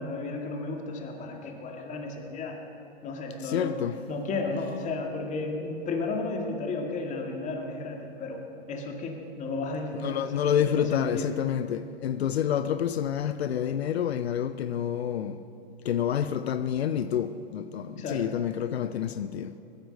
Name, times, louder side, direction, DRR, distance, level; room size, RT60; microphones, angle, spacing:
voice 1, 0.0-2.6 3.0-3.8 4.1-11.4 18.0-18.3, left 3 dB, 25° left, 2.1 m, -33 dB
voice 2, 3.4-4.0 10.0-15.4 15.8-19.6, left 9 dB, 80° left, 0.7 m, -28 dB
21.0 x 10.5 x 6.5 m
hypercardioid pair, 130°, 31 cm